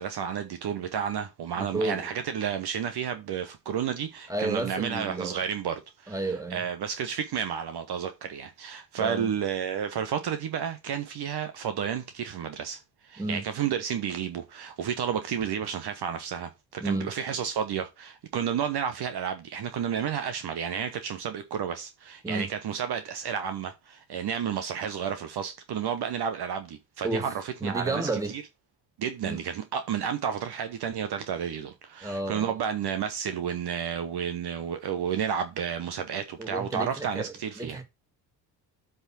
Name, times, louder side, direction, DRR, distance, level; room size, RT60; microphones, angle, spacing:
voice 1, 0.0-28.4 29.0-37.8, right 8 dB, 55° right, 1.2 m, -31 dB
voice 2, 1.6-2.1 4.3-5.4 6.1-6.6 9.0-9.3 13.2-13.4 16.8-17.1 22.2-22.5 27.0-27.3 27.6-28.3 29.2-29.4 32.0-32.5 36.4-37.8, right 2 dB, 5° right, 2.1 m, -32 dB
7.9 x 3.5 x 6.0 m
hypercardioid pair, 50°, 48 cm